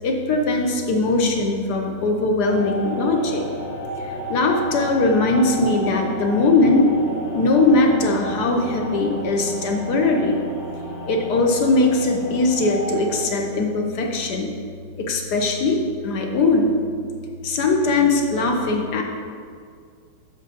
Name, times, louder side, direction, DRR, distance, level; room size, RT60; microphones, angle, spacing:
voice 1, 0.0-3.5 4.3-6.9 7.3-10.4 11.1-14.5 15.0-16.8 17.4-19.0, left 2 dB, 65° left, 2 dB, 1.2 m, -20 dB
sound 1, 2.4-13.2, equal, 50° left, 2.0 m, -33 dB
5.3 x 5.2 x 6.6 m, 2.1 s
omnidirectional pair, 2.0 m